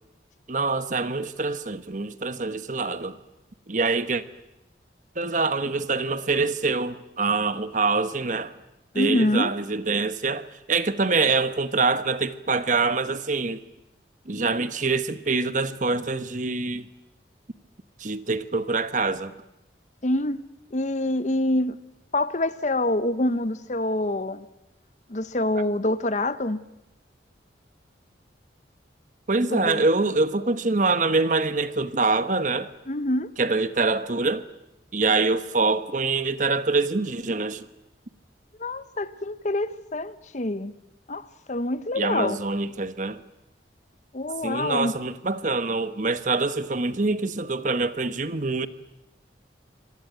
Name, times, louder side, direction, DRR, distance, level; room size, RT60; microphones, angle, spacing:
voice 1, 0.5-3.2 3.7-4.2 5.2-8.5 8.9-13.6 14.3-16.9 18.0-19.3 29.3-32.7 33.4-34.5 34.9-37.7 42.0-43.2 44.4-48.7, right 3 dB, 45° right, 1.0 m, -25 dB
voice 2, 8.9-9.5 20.0-20.4 20.7-21.8 22.1-24.5 25.1-26.6 29.5-29.8 32.9-33.3 38.6-40.7 41.1-42.4 44.1-44.9, left 1 dB, 40° left, 0.8 m, -26 dB
25.5 x 19.0 x 9.1 m
head